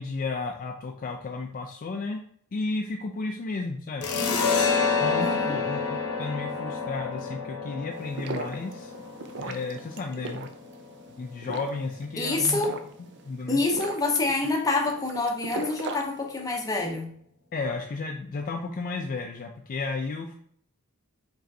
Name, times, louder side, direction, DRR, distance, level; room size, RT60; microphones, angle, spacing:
voice 1, 0.0-2.2 2.5-4.1 5.0-8.9 9.4-10.5 11.2-12.8 13.2-13.6 17.5-20.3, left 3 dB, 40° left, 2 dB, 0.3 m, -33 dB
sound 1, 4.0-11.2, left 5 dB, 75° left, 0.8 m, -29 dB
voice 2, 5.2-5.6 12.2-12.8 13.5-17.1, left 3 dB, 15° left, 1 dB, 0.7 m, -27 dB
sound 2, 7.9-16.8, right 4 dB, 50° right, 0.4 m, -39 dB
4.9 x 3.1 x 2.7 m, 0.62 s
head